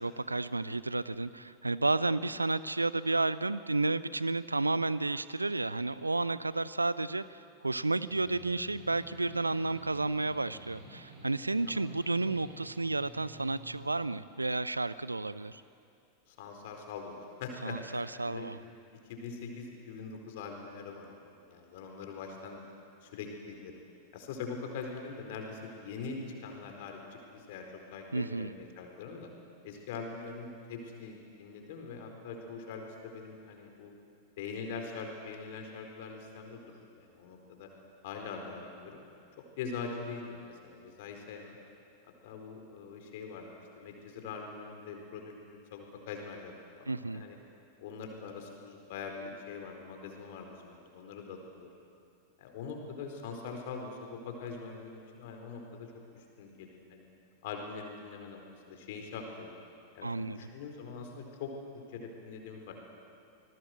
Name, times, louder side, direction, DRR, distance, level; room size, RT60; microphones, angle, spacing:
voice 1, 0.0-15.6 17.6-18.6 28.1-28.5 46.9-47.3 60.0-60.4, right 2 dB, 80° right, 17 dB, 0.6 m, -32 dB
sound 1, 8.1-13.9, right 1 dB, 55° right, 5.9 m, -51 dB
voice 2, 16.3-18.5 19.1-22.6 23.0-23.7 24.1-29.3 29.6-33.9 34.4-36.6 36.9-37.7 38.0-39.0 39.6-41.6 42.2-43.5 43.7-46.5 46.8-47.4 47.8-51.7 52.4-57.0 57.4-58.4 58.7-59.6 59.9-61.5 61.9-62.7, left 5 dB, 50° left, 3 dB, 4.5 m, -43 dB
26.5 x 20.5 x 8.0 m, 2.5 s
figure-of-eight pair, 90°, 0 cm